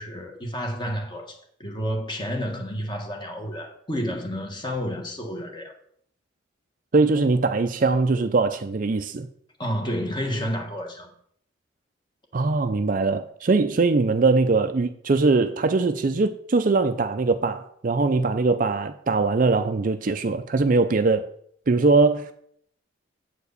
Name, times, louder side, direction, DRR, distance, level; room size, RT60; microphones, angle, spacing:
voice 1, 0.0-5.7 9.6-11.1, equal, 20° left, 1.3 m, -30 dB
voice 2, 6.9-9.3 12.3-21.2 21.7-22.3, right 3 dB, 40° right, 0.4 m, -21 dB
8.1 x 4.7 x 6.6 m
head